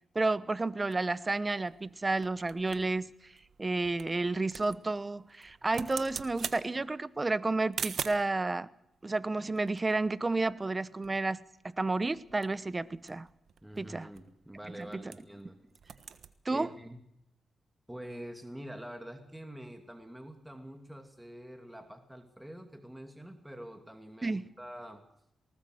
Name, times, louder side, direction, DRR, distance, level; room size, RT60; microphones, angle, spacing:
voice 1, 0.1-3.1 3.6-8.7 9.0-11.4 11.7-13.3 13.8-14.1 14.8-14.9 16.4-16.7 24.2-24.5, right 3 dB, 25° right, 0.9 m, -31 dB
sound 1, 0.9-8.4 9.1-10.8 11.0-11.1 11.4-11.7 12.1-15.4 15.7-16.3, right 7 dB, 70° right, 1.3 m, -44 dB
voice 2, 13.6-15.6 16.5-17.0 17.9-25.0, equal, 10° right, 2.5 m, -46 dB
19.5 x 19.0 x 7.9 m
cardioid pair, 70°, 0 cm